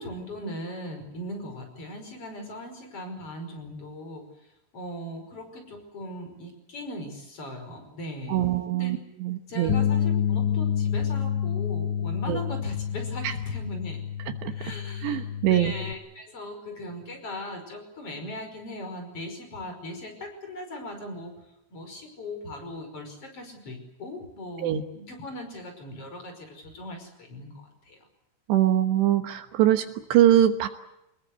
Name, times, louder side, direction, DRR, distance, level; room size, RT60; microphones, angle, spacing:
voice 1, 0.0-4.3 4.7-8.9 9.5-14.0 14.5-15.2 15.4-21.3 21.7-28.0, left 1 dB, 30° left, 6 dB, 6.1 m, -39 dB
voice 2, 8.3-9.7 12.3-12.4 13.2-13.3 14.4-14.5 15.0-15.7 24.6-24.8 28.5-30.7, right 12 dB, 75° right, 7 dB, 3.3 m, -23 dB
sound 1, 9.7-15.9, left 9 dB, 75° left, 3.2 m, -28 dB
25.5 x 21.0 x 8.2 m, 0.85 s
omnidirectional pair, 5.3 m